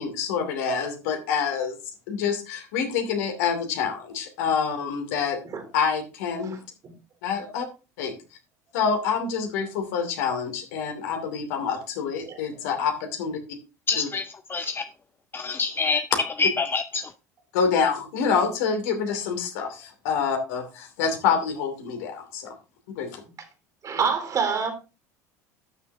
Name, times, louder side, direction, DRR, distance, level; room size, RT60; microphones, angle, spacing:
voice 1, 0.0-1.8 2.1-5.4 5.7-6.6 7.2-7.7 8.0-8.1 8.7-13.4 13.9-14.1 17.5-22.5 23.0-23.2, left 6 dB, 70° left, 2.7 m, -27 dB
voice 2, 13.9-14.8 15.3-16.1 16.4-17.1, left 4 dB, 25° left, 0.6 m, -26 dB
voice 3, 23.8-24.7, right 6 dB, 40° right, 3.7 m, -26 dB
12.5 x 6.7 x 3.5 m
hypercardioid pair, 70°, 9 cm